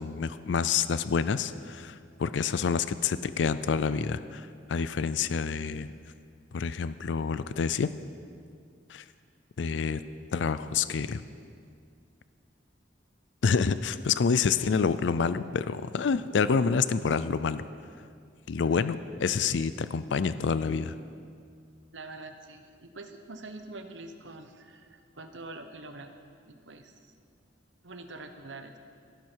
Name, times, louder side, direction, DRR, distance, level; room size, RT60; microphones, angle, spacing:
voice 1, 0.0-5.9 6.5-7.9 8.9-9.0 9.6-10.0 10.3-11.2 13.4-17.6 18.5-21.0, left 5 dB, 75° left, 14 dB, 0.4 m, -28 dB
voice 2, 18.6-18.9 21.9-26.1 26.5-27.1 27.8-28.8, right 2 dB, 80° right, 7 dB, 1.1 m, -45 dB
15.5 x 12.0 x 4.6 m, 2.2 s
head